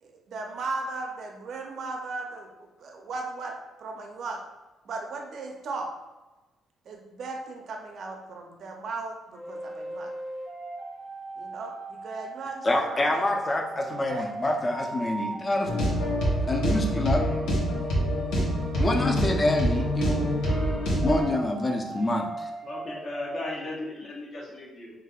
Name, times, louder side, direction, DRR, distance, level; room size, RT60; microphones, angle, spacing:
voice 1, 0.0-2.5 2.8-3.6 3.8-4.4 4.9-5.9 6.9-10.1 11.4-13.5 14.1-14.3, right 3 dB, 60° right, 2 dB, 0.4 m, -36 dB
sound 1, 9.3-23.7, right 2 dB, 5° left, 0.8 m, -39 dB
voice 2, 12.6-15.7 16.5-17.3 18.8-20.4 21.0-22.5, left 1 dB, 30° left, 2 dB, 0.5 m, -27 dB
sound 2, 15.6-21.2, equal, 85° left, 0.9 m, -26 dB
voice 3, 22.6-24.9, left 2 dB, 50° left, -2 dB, 0.8 m, -36 dB
3.3 x 2.4 x 2.3 m, 1.1 s
cardioid pair, 90°, 0 cm